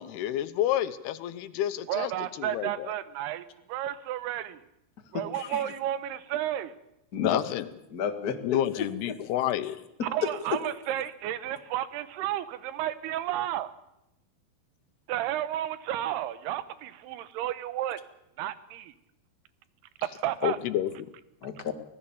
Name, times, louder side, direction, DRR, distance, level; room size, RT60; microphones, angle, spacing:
voice 1, 0.0-2.1 2.4-2.9 7.2-7.7 8.4-9.8 20.4-21.1, left 12 dB, 85° left, 12 dB, 3.0 m, -29 dB
voice 2, 1.9-4.6 5.1-6.8 10.0-13.7 15.1-18.0 18.4-18.9 20.0-20.6, right 12 dB, 90° right, 14 dB, 3.0 m, -32 dB
voice 3, 5.1-5.6 7.1-9.2 21.4-21.7, left 7 dB, 60° left, 6 dB, 1.0 m, -32 dB
25.0 x 17.5 x 7.1 m, 0.84 s
omnidirectional pair, 4.5 m